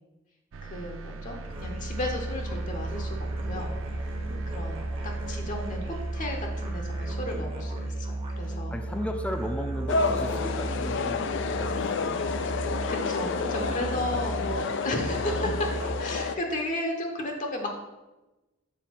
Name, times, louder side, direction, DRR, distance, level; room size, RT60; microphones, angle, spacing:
sound 1, 0.5-7.7, right 3 dB, 75° right, 0.4 m, -41 dB
voice 1, 0.6-3.2 3.5-4.1 4.5-8.7 12.9-15.7 16.0-17.7, left 1 dB, 40° left, 2 dB, 0.8 m, -34 dB
Musical instrument, 1.4-16.2, right 1 dB, 30° right, 1.0 m, -34 dB
voice 2, 4.2-4.6 7.3-7.7 8.4-12.6 14.1-14.2, equal, 5° left, 5 dB, 0.5 m, -37 dB
sound 2, 9.9-16.4, left 4 dB, 65° left, 0.4 m, -30 dB
6.4 x 3.3 x 5.8 m, 1.1 s
head